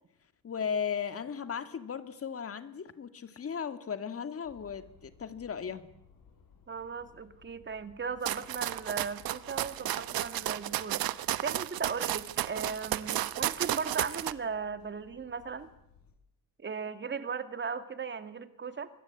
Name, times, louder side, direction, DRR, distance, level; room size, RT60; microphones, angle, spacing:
voice 1, 0.4-5.9, left 7 dB, 40° left, 11 dB, 2.1 m, -36 dB
sound 1, 4.4-16.1, left 6 dB, 70° left, 7.3 m, -61 dB
voice 2, 6.7-15.7 16.6-18.9, right 5 dB, 30° right, 10 dB, 2.2 m, -37 dB
sound 2, 8.2-14.3, right 13 dB, 85° right, 1.1 m, -33 dB
25.5 x 22.0 x 8.7 m, 0.76 s
cardioid pair, 135°, 35 cm